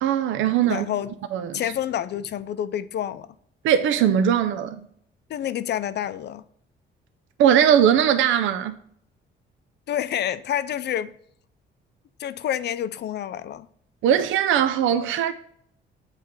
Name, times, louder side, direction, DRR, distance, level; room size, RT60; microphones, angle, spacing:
voice 1, 0.0-0.9 1.3-1.6 3.6-4.8 7.4-8.8 14.0-15.3, right 9 dB, 80° right, 0.5 m, -20 dB
voice 2, 0.7-1.1 1.5-3.3 5.3-6.4 9.9-11.1 12.2-13.7, left 10 dB, 60° left, 0.5 m, -28 dB
8.0 x 3.3 x 4.6 m
cardioid pair, 90°, 20 cm